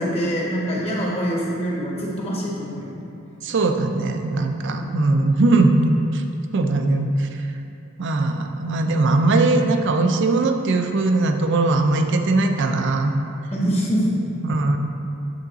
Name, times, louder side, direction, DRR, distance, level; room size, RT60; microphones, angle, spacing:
voice 1, 0.0-3.1 4.7-4.8 13.5-14.0, equal, 30° left, -4 dB, 1.2 m, -25 dB
voice 2, 3.4-6.2 6.5-7.3 8.0-13.1 14.4-14.8, right 2 dB, 60° right, 6 dB, 0.5 m, -20 dB
8.1 x 3.9 x 4.0 m, 2.6 s
head